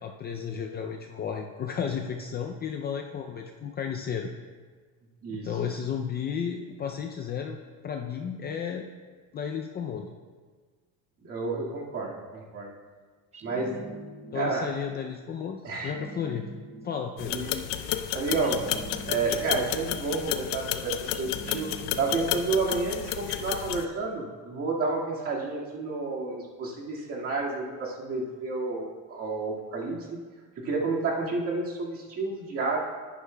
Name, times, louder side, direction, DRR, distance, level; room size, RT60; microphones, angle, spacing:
voice 1, 0.0-4.3 5.3-7.6 7.8-8.9 9.3-10.1 14.3-16.4 16.8-17.4, left 7 dB, 30° left, 3 dB, 0.4 m, -33 dB
voice 2, 11.2-12.7 13.4-13.8 14.3-14.7 15.6-16.2 17.3-18.7 19.1-21.7 22.0-30.0 30.6-32.8, right 3 dB, 40° right, -3 dB, 1.9 m, -30 dB
sound 1, 13.3-14.7 15.8-17.2 18.4-19.8 21.1-22.5, right 2 dB, 20° right, 0.6 m, -44 dB
sound 2, 17.2-23.8, left 12 dB, 85° left, 0.6 m, -32 dB
11.0 x 10.0 x 2.2 m, 1.5 s
cardioid pair, 140°, 37 cm